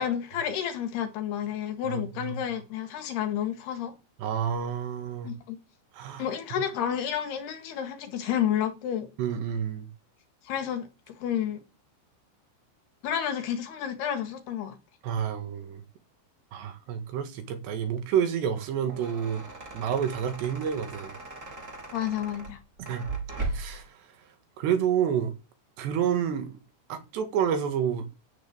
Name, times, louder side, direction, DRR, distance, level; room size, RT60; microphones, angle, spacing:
voice 1, 0.0-3.9 5.2-5.6 6.2-9.1 10.5-11.6 13.0-14.8 21.9-22.6, left 9 dB, 65° left, 3.7 m, -30 dB
voice 2, 1.9-2.4 4.2-5.3 5.9-6.2 6.5-6.7 9.2-9.9 15.0-15.8 16.5-19.4 19.7-21.1 22.8-23.1 23.5-23.9 24.6-25.3 25.8-26.5 26.9-28.1, right 8 dB, 70° right, 3.9 m, -29 dB
sound 1, 18.6-23.9, right 3 dB, 20° right, 2.7 m, -38 dB
10.5 x 9.1 x 8.8 m
omnidirectional pair, 5.2 m